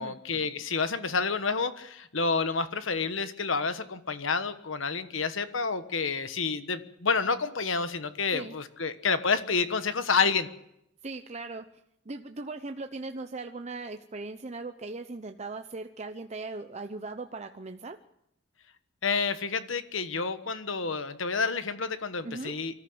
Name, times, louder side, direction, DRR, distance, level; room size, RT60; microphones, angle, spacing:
voice 1, 0.0-10.5 19.0-22.8, left 5 dB, 65° left, 11 dB, 1.3 m, -29 dB
voice 2, 11.0-11.6 12.1-18.0 22.2-22.5, right 3 dB, 35° right, 7 dB, 0.8 m, -38 dB
24.5 x 14.0 x 8.0 m, 0.78 s
head